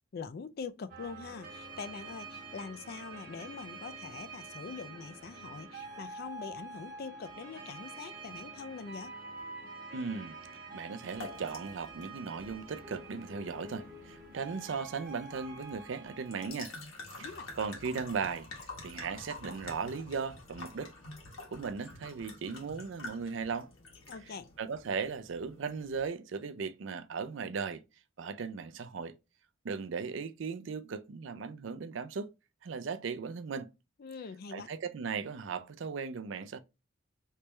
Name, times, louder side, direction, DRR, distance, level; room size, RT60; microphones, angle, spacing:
voice 1, 0.1-9.1 17.2-17.5 24.1-24.5 34.0-34.7, left 5 dB, 50° left, 0.4 m, -43 dB
sound 1, 0.9-16.5, right 3 dB, 45° right, 1.0 m, -47 dB
voice 2, 9.9-10.4 10.7-16.7 17.2-17.3 17.5-18.5 18.8-20.9 21.5-23.7 24.3-27.8 28.2-29.2 29.6-32.3 32.6-33.7 34.5-36.6, right 5 dB, 65° right, 0.4 m, -37 dB
sound 2, 11.0-26.1, left 2 dB, 80° left, 1.4 m, -49 dB
3.3 x 3.2 x 3.0 m
head